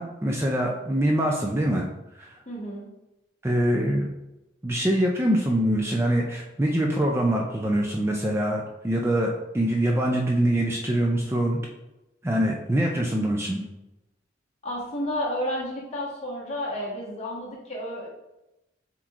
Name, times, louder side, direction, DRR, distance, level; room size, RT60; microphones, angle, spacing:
voice 1, 0.0-1.9 2.2-2.3 3.4-4.1 4.6-9.3 9.5-11.6 12.2-13.6, right 1 dB, 15° right, -1 dB, 0.4 m, -24 dB
voice 2, 2.5-2.9 14.6-18.1, left 1 dB, 35° left, -5 dB, 1.3 m, -31 dB
7.1 x 3.0 x 2.5 m, 0.95 s
head